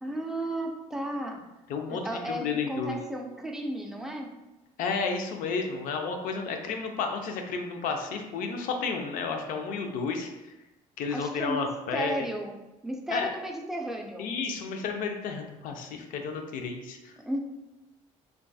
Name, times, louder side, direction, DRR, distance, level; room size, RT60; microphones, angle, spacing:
voice 1, 0.0-1.5 1.9-4.3 11.1-11.7 11.9-12.6 12.8-14.3 17.2-17.4, right 1 dB, 5° right, 2 dB, 0.3 m, -34 dB
voice 2, 1.7-3.0 4.8-10.5 11.0-12.3 13.1-13.3 14.2-17.1, left 5 dB, 75° left, 4 dB, 0.4 m, -32 dB
2.5 x 2.3 x 2.2 m, 1.0 s
cardioid pair, 95°, 14 cm